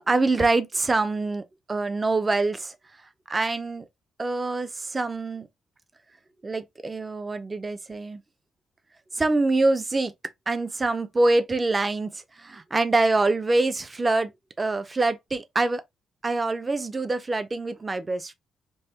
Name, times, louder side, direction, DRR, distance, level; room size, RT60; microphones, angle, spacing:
voice 1, 0.0-1.4 1.7-2.8 3.3-3.8 4.2-5.5 6.4-8.2 9.1-10.1 10.5-14.3 14.6-15.8 16.2-18.3, right 2 dB, 20° right, 0.4 m, -25 dB
5.3 x 2.1 x 2.7 m
cardioid pair, 175°, 0 cm